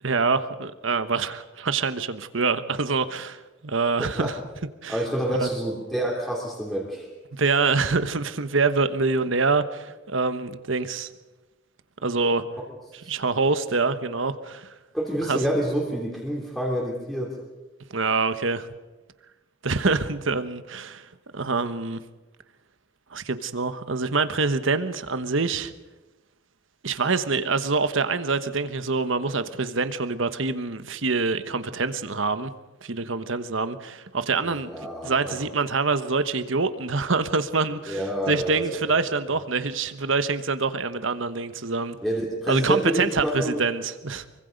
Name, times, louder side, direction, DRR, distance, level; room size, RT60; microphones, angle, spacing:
voice 1, 0.0-4.3 4.8-5.0 5.4-5.5 7.3-11.1 12.0-12.5 13.1-14.7 15.3-15.4 17.9-18.7 19.6-21.1 21.3-22.0 23.1-25.7 26.8-32.5 32.8-34.7 35.0-42.0 42.5-44.2, right 4 dB, 70° right, 11 dB, 1.2 m, -25 dB
voice 2, 4.0-4.3 4.9-7.1 14.9-17.3 34.4-35.5 37.9-38.7 42.0-43.6, right 1 dB, ahead, -2 dB, 2.9 m, -28 dB
25.0 x 24.0 x 5.3 m, 1.1 s
head